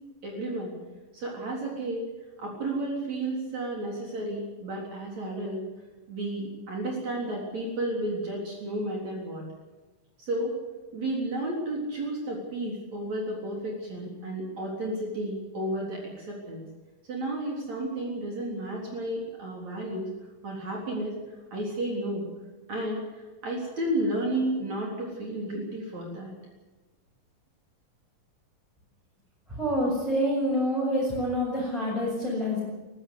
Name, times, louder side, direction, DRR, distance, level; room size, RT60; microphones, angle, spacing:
voice 1, 0.2-0.7 1.1-2.1 2.4-5.7 6.1-9.5 10.2-10.6 10.9-16.6 17.1-20.1 20.4-21.2 21.5-22.3 22.7-26.3, right 1 dB, 50° right, -2 dB, 4.9 m, -32 dB
voice 2, 29.5-32.6, equal, ahead, -6 dB, 6.8 m, -27 dB
23.0 x 15.5 x 8.3 m, 1.2 s
omnidirectional pair, 4.1 m